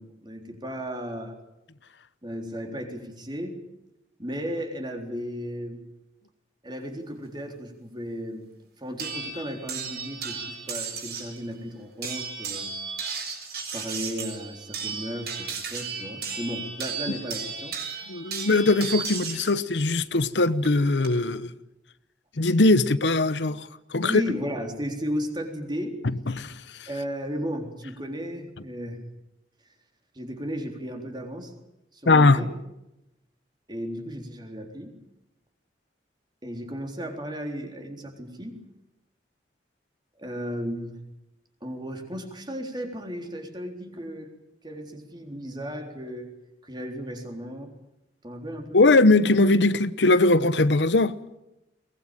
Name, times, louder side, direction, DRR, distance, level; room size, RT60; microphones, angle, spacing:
voice 1, 0.0-1.4 2.2-3.6 4.2-5.9 6.6-8.5 8.8-12.7 13.7-17.8 24.0-26.0 26.9-29.1 30.1-31.5 31.9-32.5 33.7-35.0 36.4-38.6 40.2-41.0 41.6-44.3 44.6-46.3 46.6-47.7 48.2-48.8, equal, 25° right, 3.8 m, -35 dB
sound 1, 9.0-11.4 12.0-19.5 20.6-21.1, right 5 dB, 60° right, 6.7 m, -34 dB
voice 2, 18.1-21.5 22.4-24.2 26.0-26.9 32.1-32.4 48.7-51.2, left 2 dB, 80° left, 1.0 m, -20 dB
22.5 x 20.0 x 9.0 m
head